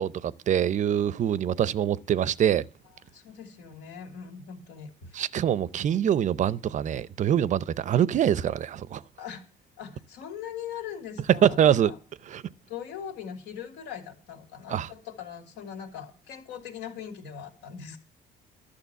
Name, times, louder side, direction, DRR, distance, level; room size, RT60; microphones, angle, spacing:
voice 1, 0.0-2.6 5.1-9.0 11.4-11.9 12.3-12.4 14.7-14.9, right 10 dB, 45° right, 0.5 m, -24 dB
voice 2, 3.1-5.3 9.2-9.5 9.8-12.0 12.6-18.0, left 8 dB, 85° left, 2.8 m, -41 dB
11.5 x 6.6 x 8.1 m
cardioid pair, 110°, 17 cm